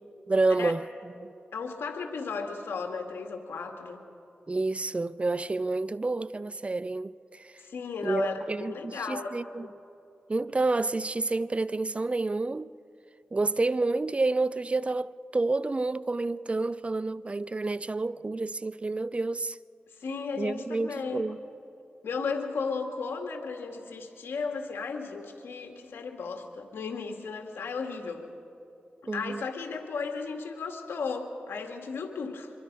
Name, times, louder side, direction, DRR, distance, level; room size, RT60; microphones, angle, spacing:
voice 1, 0.3-1.3 4.5-7.5 8.0-9.7 10.3-12.7 13.3-19.6 20.3-21.4 29.1-29.4, right 3 dB, 30° right, 0.5 m, -29 dB
voice 2, 1.5-4.0 7.6-8.3 8.6-9.7 20.0-21.2 22.0-28.2 29.1-32.5, left 5 dB, 90° left, 2.0 m, -35 dB
25.5 x 22.0 x 5.4 m
cardioid pair, 55°, 4 cm